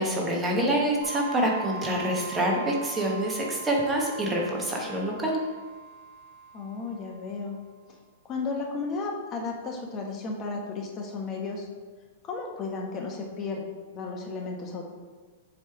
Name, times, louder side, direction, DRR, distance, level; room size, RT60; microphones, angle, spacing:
voice 1, 0.0-5.4, right 1 dB, 15° right, -1 dB, 1.0 m, -26 dB
sound 1, 1.0-7.5, right 4 dB, 60° left, 1.6 m, -41 dB
voice 2, 6.5-7.6 8.2-11.7 12.2-13.6 13.9-14.9, left 4 dB, 30° left, 1 dB, 0.9 m, -34 dB
7.3 x 3.3 x 4.7 m, 1.4 s
hypercardioid pair, 145°, 0 cm